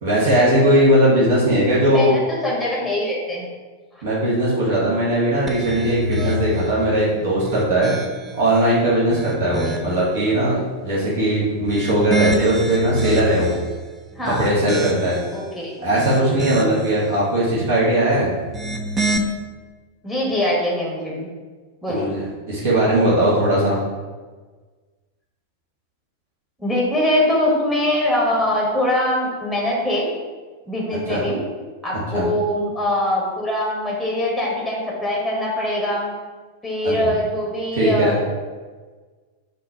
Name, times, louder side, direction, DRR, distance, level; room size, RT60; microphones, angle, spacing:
voice 1, 0.0-2.2 4.0-7.9 8.3-13.6 14.4-15.2 15.8-18.3 21.9-23.8 31.1-31.2 32.1-32.2 36.8-36.9 37.7-38.1, right 1 dB, 55° right, -6 dB, 1.3 m, -19 dB
voice 2, 1.9-3.5 3.9-4.0 14.1-14.5 15.3-15.7 20.0-21.3 21.8-22.1 26.6-30.1 30.7-31.4 31.8-36.1 36.6-38.2, left 1 dB, ahead, -3 dB, 1.1 m, -22 dB
sound 1, 5.5-6.8 7.3-8.4 8.9-10.0 11.5-13.7 14.2-15.3 15.8-16.9 18.4-19.2, equal, 15° right, 0.4 m, -27 dB
4.4 x 2.6 x 4.2 m, 1.4 s
figure-of-eight pair, 90°, 0 cm